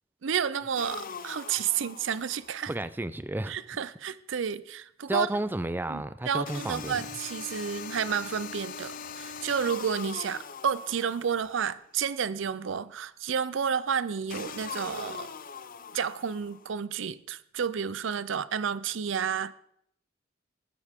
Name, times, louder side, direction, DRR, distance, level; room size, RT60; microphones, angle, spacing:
voice 1, 0.2-2.7 3.5-5.3 5.9-15.3 15.9-19.5, right 7 dB, 70° right, 0.5 m, -31 dB
sound 1, 0.7-2.7 6.4-11.7 14.3-16.7, left 6 dB, 45° left, 0.6 m, -41 dB
voice 2, 2.7-3.6 5.1-7.0, right 1 dB, 10° right, 0.4 m, -32 dB
20.0 x 9.8 x 3.6 m
head